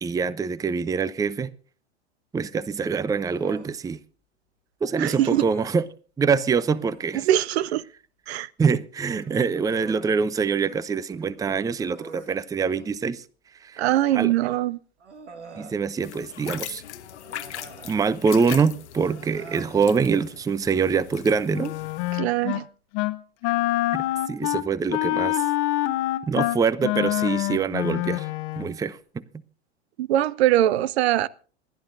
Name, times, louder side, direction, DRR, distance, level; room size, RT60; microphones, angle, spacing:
voice 1, 0.0-1.5 2.3-4.0 4.8-5.8 6.2-7.3 8.6-13.2 13.6-13.8 14.1-14.3 15.5-16.8 17.8-21.7 23.9-25.4 26.3-28.3 28.6-29.2, right 5 dB, 10° right, 0.5 m, -24 dB
Human voice, 3.2-3.8 5.0-5.9 6.6-7.1 9.1-10.8 11.2-11.3 11.8-13.0 14.2-14.3 15.0-15.8 17.2-18.0 19.1-19.7, right 4 dB, 90° right, 2.1 m, -45 dB
voice 2, 5.0-5.4 7.1-7.8 8.3-8.5 13.8-14.8 22.1-22.7 30.0-31.3, right 13 dB, 65° right, 0.7 m, -22 dB
sound 1, 16.0-22.2, left 11 dB, 80° left, 1.1 m, -40 dB
Wind instrument woodwind instrument, 21.5-22.6 22.9-23.2 23.4-28.7, left 17 dB, 55° left, 1.2 m, -26 dB
27.0 x 11.5 x 2.6 m
hypercardioid pair, 90°, 34 cm